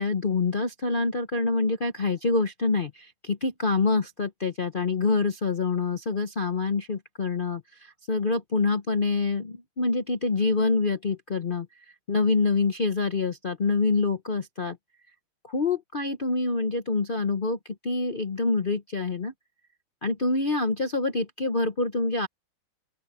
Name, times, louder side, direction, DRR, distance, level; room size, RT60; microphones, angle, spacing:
voice 1, 0.0-11.7 12.1-14.8 15.4-19.3 20.0-22.3, left 3 dB, 50° left, 0.6 m, -26 dB
open air
omnidirectional pair, 2.3 m